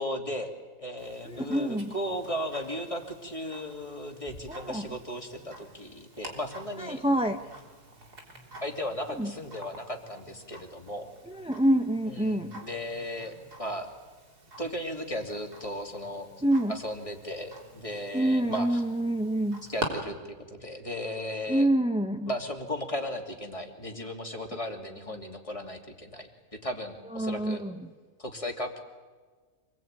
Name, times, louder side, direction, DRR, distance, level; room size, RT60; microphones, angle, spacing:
voice 1, 0.0-7.0 8.6-11.1 12.1-13.9 14.6-16.3 16.7-18.8 19.7-20.2 20.5-21.7 22.3-26.3 26.6-27.6 28.2-28.8, equal, 20° left, 2 dB, 2.9 m, -36 dB
Tick-tock, 1.0-19.9, right 2 dB, 75° right, 4.2 m, -46 dB
voice 2, 1.3-1.9 4.5-4.9 6.8-7.4 9.2-9.3 11.3-12.6 16.4-16.7 18.1-19.6 21.5-22.3 27.1-27.9, right 1 dB, 5° right, 5 dB, 0.5 m, -27 dB
26.5 x 20.5 x 9.1 m, 1.4 s
omnidirectional pair, 1.7 m